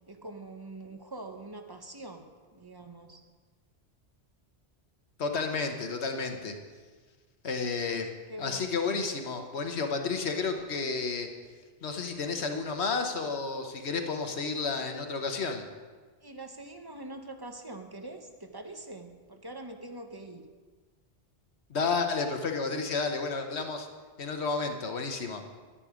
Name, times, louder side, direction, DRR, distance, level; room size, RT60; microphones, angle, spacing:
voice 1, 0.1-2.3 2.5-3.2 7.9-8.0 8.3-9.0 16.2-20.4, right 2 dB, 25° right, 5 dB, 0.8 m, -44 dB
voice 2, 5.2-6.5 7.4-8.1 8.4-11.3 11.8-15.6 21.7-23.9 24.2-25.4, left 4 dB, 75° left, 4 dB, 1.4 m, -31 dB
11.5 x 10.0 x 5.0 m, 1.4 s
omnidirectional pair, 1.1 m